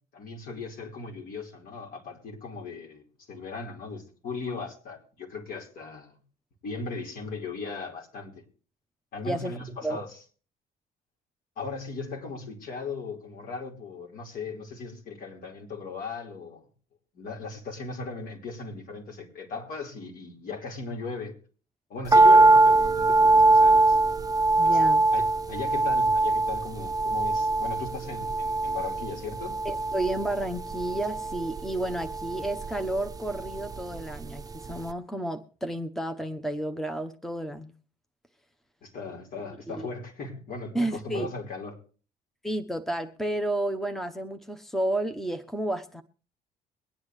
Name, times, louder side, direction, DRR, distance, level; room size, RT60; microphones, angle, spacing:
voice 1, 0.1-6.2 6.6-8.4 9.1-10.2 11.6-16.6 17.1-21.3 21.9-24.0 24.6-24.8 25.1-29.6 38.8-41.8, left 4 dB, 60° left, 4.6 m, -37 dB
sound 1, 22.1-34.4 34.7-34.8, right 2 dB, 20° right, 0.7 m, -22 dB
voice 2, 24.6-25.0 29.6-37.7 39.7-39.9 40.7-41.3 42.4-46.0, right 1 dB, ahead, 1.0 m, -31 dB
23.0 x 9.5 x 3.2 m
cardioid pair, 110°, 17 cm